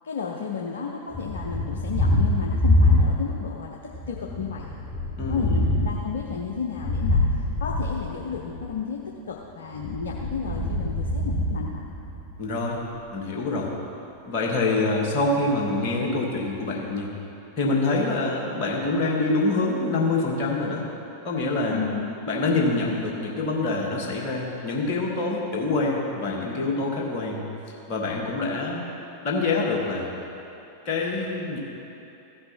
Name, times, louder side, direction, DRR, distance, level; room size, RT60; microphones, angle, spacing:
voice 1, 0.0-4.7 5.3-9.0 9.3-12.0 21.7-22.1, left 6 dB, 65° left, -1 dB, 0.7 m, -33 dB
Thunder, 1.1-3.5 3.9-8.7 9.7-12.4, left 1 dB, 15° left, 1.4 m, -25 dB
voice 2, 5.2-5.7 12.4-12.8 13.1-13.7 14.3-17.1 17.6-20.9 21.2-21.8 22.3-27.4 27.9-28.9 29.2-30.1 30.9-31.6, left 2 dB, 40° left, -2 dB, 1.8 m, -25 dB
15.0 x 5.4 x 4.4 m, 2.9 s
figure-of-eight pair, 90°, 0 cm